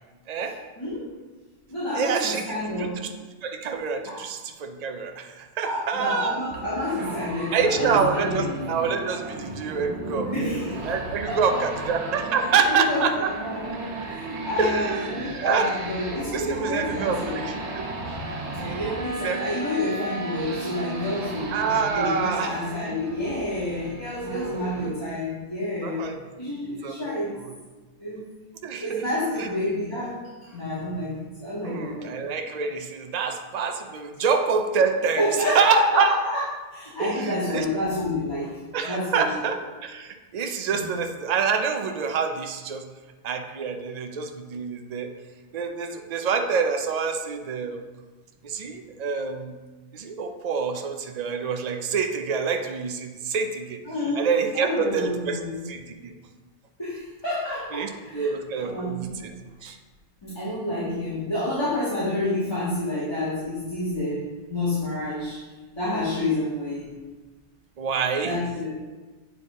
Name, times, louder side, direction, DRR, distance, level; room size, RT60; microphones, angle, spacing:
voice 1, 0.8-1.1 1.7-3.1 4.1-4.2 5.6-8.4 10.3-10.8 11.3-11.4 12.7-13.7 14.1-17.4 18.6-21.6 21.9-27.3 28.0-28.2 28.8-32.2 35.2-36.4 36.7-39.2 40.7-40.9 53.8-54.2 54.5-55.6 56.8-58.3 58.6-59.3 60.2-65.4 65.7-66.9 68.2-68.7, left 1 dB, 25° left, -11 dB, 1.6 m, -29 dB
voice 2, 1.9-6.4 7.5-13.3 14.6-15.1 15.4-15.7 16.3-17.9 18.6-19.4 21.5-22.6 24.3-24.7 25.8-26.2 26.8-27.1 28.6-29.0 29.4-29.5 31.6-35.2 35.5-36.1 37.0-37.7 38.7-42.8 43.2-45.1 45.5-47.8 48.4-49.5 49.9-53.8 54.2-55.4 55.6-56.1 57.7-59.3 59.6-59.8 67.8-68.4, right 5 dB, 50° right, 6 dB, 0.5 m, -27 dB
sound 1, 6.5-24.9, right 2 dB, 70° right, 1.1 m, -35 dB
8.0 x 4.6 x 3.6 m, 1.3 s
omnidirectional pair, 1.2 m